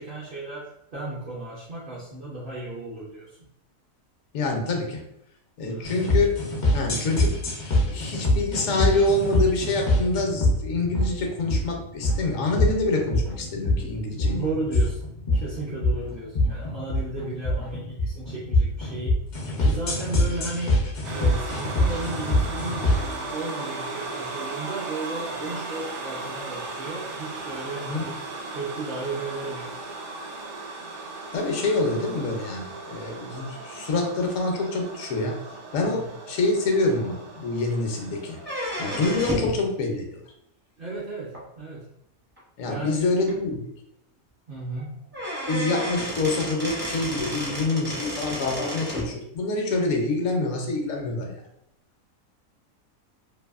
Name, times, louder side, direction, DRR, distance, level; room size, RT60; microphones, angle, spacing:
voice 1, 0.0-3.4 5.6-5.9 14.1-15.0 15.3-19.2 19.6-20.7 21.1-28.2 28.5-29.7 35.9-36.1 40.8-41.9 42.7-43.0 44.5-45.0, right 2 dB, 60° right, -6 dB, 0.6 m, -34 dB
voice 2, 4.3-5.0 5.6-6.3 6.7-7.4 7.8-14.4 27.8-28.0 31.3-35.4 35.7-38.4 38.8-40.2 42.6-43.6 45.5-51.4, left 2 dB, 75° left, 2 dB, 0.9 m, -26 dB
sound 1, 5.8-23.1, left 1 dB, 55° left, 0.5 m, -24 dB
sound 2, 21.0-39.1, right 3 dB, 75° right, 1.0 m, -37 dB
sound 3, 38.4-39.6 41.3-41.4 42.4-42.5 42.9-43.0 43.3-43.4 44.7-44.8 45.1-49.1, equal, 15° right, 0.4 m, -31 dB
2.6 x 2.5 x 2.3 m, 0.77 s
omnidirectional pair, 1.5 m